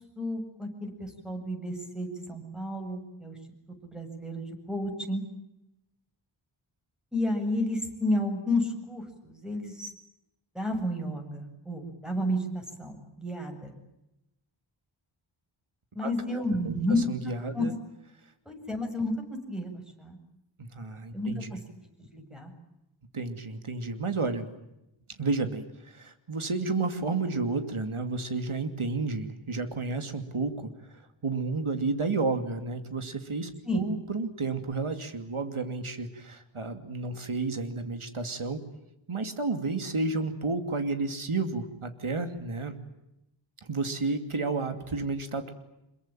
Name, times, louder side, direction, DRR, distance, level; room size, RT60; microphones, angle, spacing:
voice 1, 0.2-3.4 3.8-5.2 7.1-9.9 10.5-13.7 15.9-17.0 17.5-17.7 18.5-20.2 21.1-21.6 22.0-22.5 33.6-33.8, left 1 dB, ahead, 4 dB, 8.0 m, -31 dB
voice 2, 16.0-16.7 17.1-17.7 20.6-21.5 23.1-24.5 25.2-30.7 31.2-38.6 39.1-42.8 43.6-45.5, right 3 dB, 85° right, 8 dB, 2.8 m, -31 dB
27.0 x 23.0 x 9.1 m, 0.88 s
wide cardioid pair, 55°, 48 cm